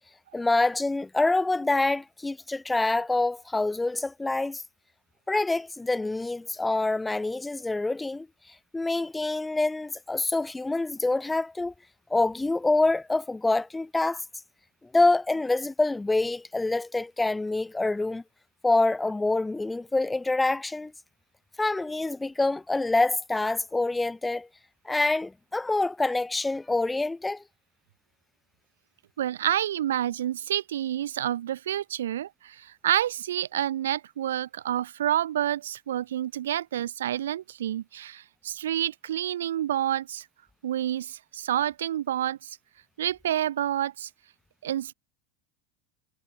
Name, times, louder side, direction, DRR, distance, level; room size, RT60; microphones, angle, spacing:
voice 1, 0.3-4.6 5.3-8.3 8.7-11.7 12.1-14.2 14.9-18.2 18.6-20.9 21.6-24.5 24.8-27.4, left 2 dB, 10° left, 0.6 m, -26 dB
voice 2, 29.2-40.2 40.6-42.6 43.0-44.1 44.6-44.9, right 11 dB, 70° right, 0.9 m, -28 dB
figure-of-eight pair, 80°, 0 cm